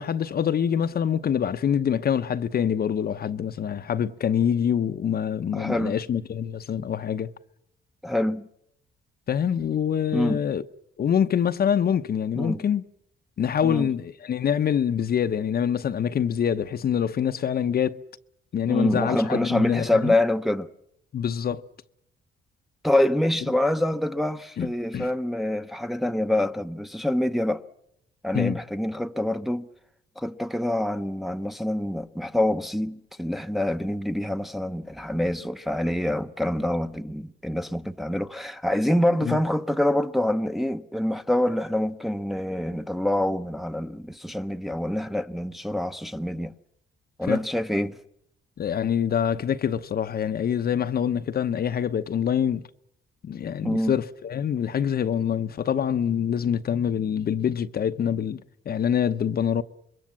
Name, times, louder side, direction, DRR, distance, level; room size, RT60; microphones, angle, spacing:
voice 1, 0.0-7.3 9.3-10.6 11.0-12.8 13.4-18.0 18.5-20.1 21.1-21.6 24.6-25.1 28.3-28.6 39.2-39.4 47.2-47.4 48.6-52.6 53.2-58.4 58.7-59.6, left 8 dB, 50° left, 0.8 m, -25 dB
voice 2, 5.5-6.0 8.0-8.5 10.1-10.4 12.4-12.6 13.6-13.9 18.7-20.7 22.8-27.6 28.2-29.7 30.2-46.5 47.2-48.0 53.6-54.0, left 1 dB, ahead, 0.9 m, -26 dB
26.5 x 22.0 x 7.4 m
cardioid pair, 90°, 20 cm